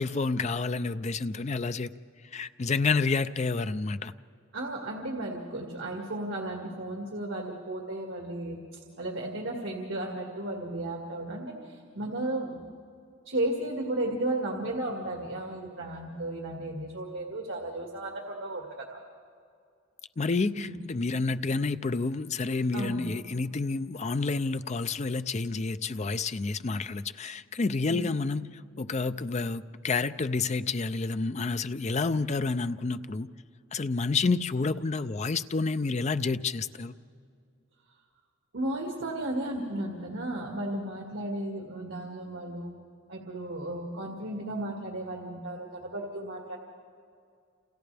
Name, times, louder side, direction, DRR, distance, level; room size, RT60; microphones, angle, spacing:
voice 1, 0.0-1.9 2.3-4.1 20.2-28.5 28.8-33.3 33.7-36.9, left 4 dB, 35° left, 0.5 m, -29 dB
voice 2, 4.5-12.7 13.3-19.0 20.5-20.7 22.7-23.0 27.9-28.2 38.5-42.8 43.1-46.6, right 1 dB, 75° right, 2.1 m, -34 dB
30.0 x 28.0 x 3.4 m
head